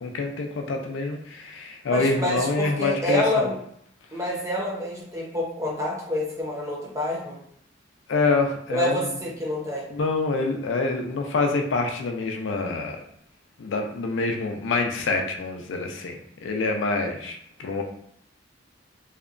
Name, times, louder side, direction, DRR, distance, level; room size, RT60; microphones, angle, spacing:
voice 1, 0.0-3.5 8.1-9.1 9.9-13.0 13.6-17.8, left 3 dB, 80° left, 3 dB, 0.4 m, -26 dB
voice 2, 1.9-3.5 4.1-7.4 8.7-9.8, left 1 dB, 15° right, -4 dB, 0.6 m, -27 dB
2.7 x 2.1 x 2.4 m, 0.69 s
head